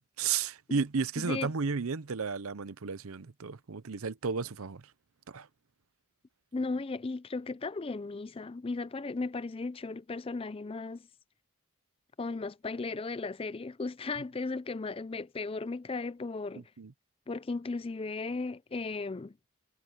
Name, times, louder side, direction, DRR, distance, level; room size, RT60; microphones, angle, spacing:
voice 1, 0.0-4.8 5.3-5.5 16.8-16.9, right 5 dB, 80° right, 0.7 m, -33 dB
voice 2, 1.2-1.5 6.5-11.0 12.2-16.6 17.3-19.4, left 3 dB, 25° left, 0.4 m, -36 dB
head